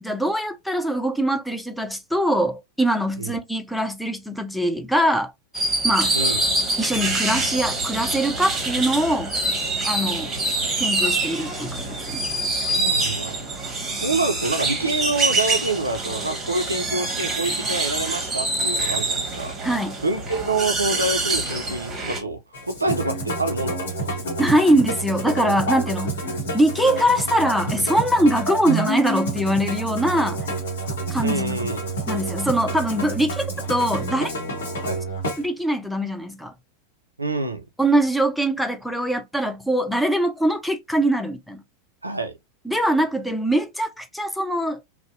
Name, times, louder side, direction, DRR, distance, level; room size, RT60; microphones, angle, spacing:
voice 1, 0.0-5.3 5.8-6.2 6.8-9.3 9.8-10.3 10.8-12.2 19.6-20.0 24.4-26.2 26.5-30.4 31.1-31.7 32.1-33.4 33.7-34.3 35.4-36.5 37.8-41.6 42.7-44.8, right 1 dB, ahead, 0.4 m, -22 dB
sound 1, 5.5-22.2, right 2 dB, 20° right, 1.0 m, -25 dB
voice 2, 12.7-13.4 14.0-19.6 20.0-24.1 31.2-31.8 34.8-35.0 37.2-37.6 42.0-42.3, right 2 dB, 90° right, 0.3 m, -27 dB
Musical instrument, 22.5-35.4, right 2 dB, 70° left, 0.9 m, -28 dB
2.6 x 2.0 x 2.5 m
figure-of-eight pair, 90°, 0 cm